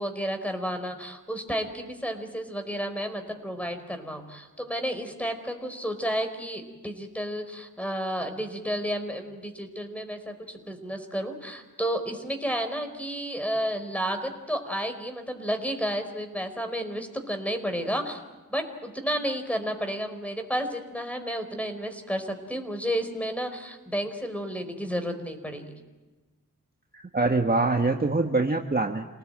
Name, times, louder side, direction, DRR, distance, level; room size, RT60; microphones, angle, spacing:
voice 1, 0.0-18.2 18.5-25.7, equal, 5° left, 6 dB, 4.7 m, -31 dB
voice 2, 26.9-29.1, right 3 dB, 30° right, 3 dB, 1.5 m, -24 dB
28.5 x 19.0 x 8.9 m, 1.2 s
wide cardioid pair, 70°, 33 cm